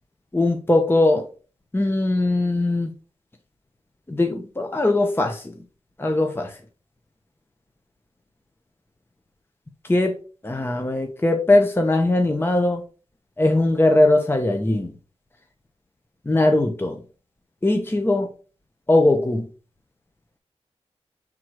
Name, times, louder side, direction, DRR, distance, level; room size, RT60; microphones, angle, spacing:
voice 1, 0.3-1.3 1.7-2.9 4.1-5.5 6.0-6.6 9.8-10.1 10.4-12.8 13.4-14.9 16.3-17.0 17.6-18.3 18.9-19.5, left 2 dB, 20° left, 4 dB, 0.8 m, -20 dB
6.0 x 3.8 x 4.6 m, 0.38 s
wide cardioid pair, 70°, 11 cm